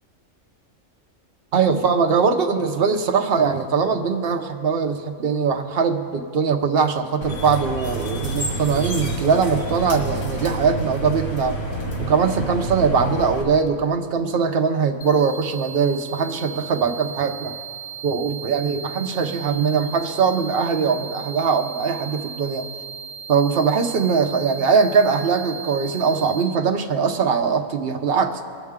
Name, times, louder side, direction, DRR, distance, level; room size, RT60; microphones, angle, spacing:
voice 1, 1.5-11.6 12.0-17.5 18.0-22.7 23.3-28.4, right 5 dB, 50° right, 5 dB, 0.8 m, -21 dB
sound 1, 7.2-13.4, right 1 dB, 90° left, 2.2 m, -28 dB
sound 2, 15.0-26.4, right 6 dB, 40° left, 1.6 m, -36 dB
21.0 x 7.2 x 3.6 m, 2.2 s
omnidirectional pair, 1.5 m